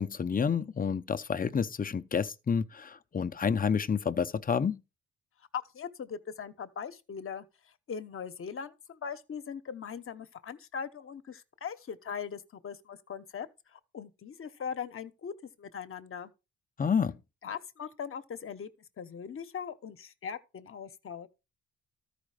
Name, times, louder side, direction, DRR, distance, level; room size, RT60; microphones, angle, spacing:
voice 1, 0.0-4.8 16.8-17.2, left 6 dB, 30° left, 0.8 m, -29 dB
voice 2, 5.5-7.4 7.9-16.3 17.4-18.7 19.0-21.3, left 7 dB, 45° left, 1.1 m, -40 dB
13.5 x 5.0 x 5.0 m
cardioid pair, 90°, 30 cm